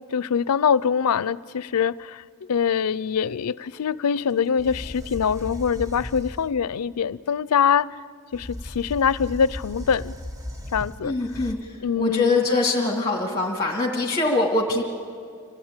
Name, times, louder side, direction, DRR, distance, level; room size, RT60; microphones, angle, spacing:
voice 1, 0.1-2.2 2.5-7.9 8.3-10.1 10.7-11.2 11.8-12.4, left 7 dB, 85° left, 20 dB, 0.5 m, -23 dB
sound 1, 4.3-4.4 4.6-6.6 8.3-11.5, left 1 dB, 15° right, 1.1 m, -36 dB
voice 2, 11.0-11.7 12.0-14.8, left 2 dB, 20° left, -1 dB, 2.2 m, -23 dB
26.0 x 17.0 x 8.9 m, 2.2 s
head